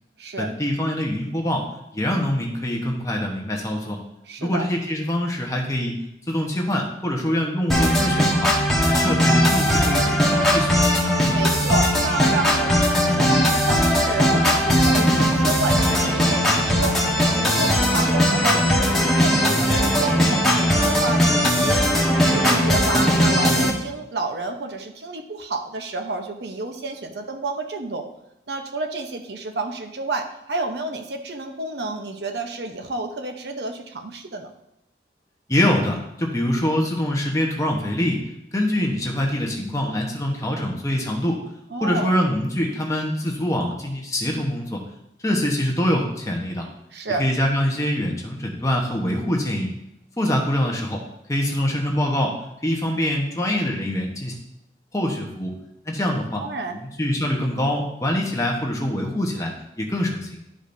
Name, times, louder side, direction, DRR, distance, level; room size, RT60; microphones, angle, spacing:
voice 1, 0.4-1.7 1.9-4.0 4.4-6.0 6.3-8.5 8.9-11.0 35.5-38.2 38.5-41.4 41.8-44.8 45.2-46.7 47.2-49.7 50.2-51.0 51.3-52.3 52.6-54.3 54.9-55.5 55.8-56.4 56.7-60.4, left 1 dB, 20° left, 0 dB, 1.1 m, -24 dB
voice 2, 4.3-4.7 11.3-17.0 17.3-21.9 22.3-28.0 28.5-34.5 41.7-42.2 46.9-47.2 56.4-56.8, right 3 dB, 75° right, 5 dB, 0.8 m, -30 dB
sound 1, 7.7-23.7, equal, ahead, 1.2 m, -19 dB
11.5 x 5.1 x 2.7 m, 0.83 s
head